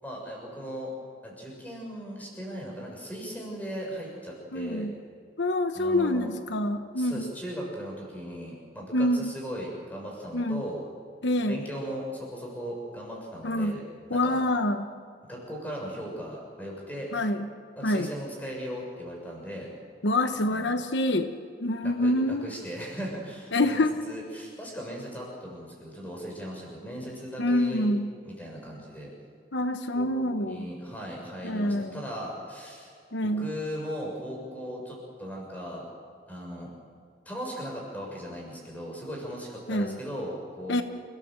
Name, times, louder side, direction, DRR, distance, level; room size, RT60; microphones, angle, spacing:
voice 1, 0.0-0.9 1.2-4.9 5.7-6.3 7.0-10.8 11.5-13.8 14.1-14.4 15.3-17.1 17.7-19.7 20.4-20.7 21.8-27.9 28.2-29.1 29.9-32.9 33.2-35.8 36.3-36.7 37.2-40.8, equal, 10° left, -1 dB, 6.4 m, -38 dB
voice 2, 4.5-4.9 5.4-7.2 8.9-9.3 10.3-10.6 11.2-11.6 13.4-13.8 14.1-14.9 17.1-17.5 17.8-18.1 20.0-21.3 21.6-22.5 23.5-24.0 27.4-28.1 29.5-30.7 31.4-31.9 33.1-33.5 39.7-40.0 40.7-40.8, left 1 dB, 80° left, 8 dB, 1.1 m, -26 dB
28.5 x 17.0 x 7.7 m, 2.2 s
head